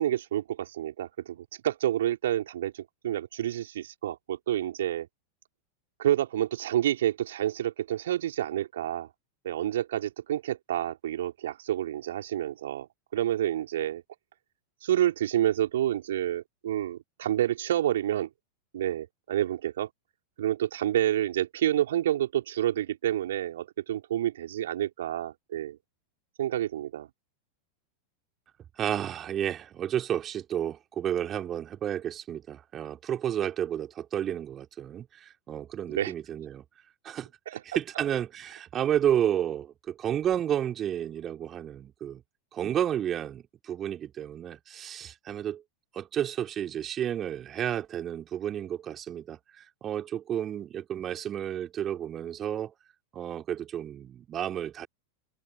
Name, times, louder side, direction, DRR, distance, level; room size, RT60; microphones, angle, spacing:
voice 1, 0.0-5.1 6.0-9.1 9.4-12.9 13.1-14.0 14.8-18.3 18.7-19.9 20.4-25.8 26.4-27.1 35.9-36.1 37.5-37.6, right 12 dB, 60° right, 4.1 m, -29 dB
voice 2, 28.8-36.6 37.0-37.3 37.6-42.2 42.5-45.6 45.9-52.7 53.1-54.9, right 10 dB, 25° right, 3.9 m, -31 dB
figure-of-eight pair, 90°, 0 cm